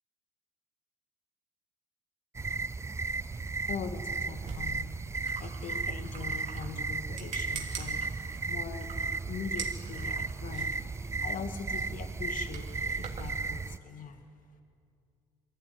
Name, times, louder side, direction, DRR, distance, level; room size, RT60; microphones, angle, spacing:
sound 1, 2.3-13.8, right 4 dB, 15° right, 0.5 m, -35 dB
voice 1, 3.7-4.9 5.4-8.1 8.5-14.2, left 6 dB, 55° left, 7 dB, 2.0 m, -42 dB
sound 2, 4.3-13.3, right 5 dB, 45° right, 3.2 m, -46 dB
22.0 x 15.5 x 9.5 m, 2.4 s
hypercardioid pair, 65°, 17 cm